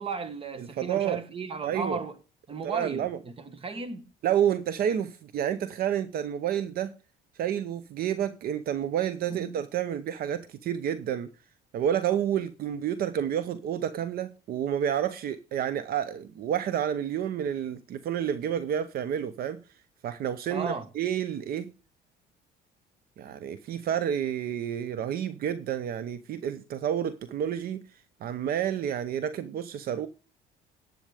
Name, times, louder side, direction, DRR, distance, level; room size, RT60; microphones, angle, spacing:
voice 1, 0.0-2.2 2.5-3.1 3.4-4.1 9.3-9.6 20.5-20.9, right 4 dB, 35° right, 1.5 m, -35 dB
voice 2, 0.6-1.2 1.6-2.0 2.6-3.2 4.2-6.9 7.4-11.3 11.7-19.6 20.0-21.7 23.2-27.8 28.2-30.1, right 9 dB, 65° right, 0.8 m, -29 dB
10.5 x 8.0 x 5.0 m
cardioid pair, 110°, 17 cm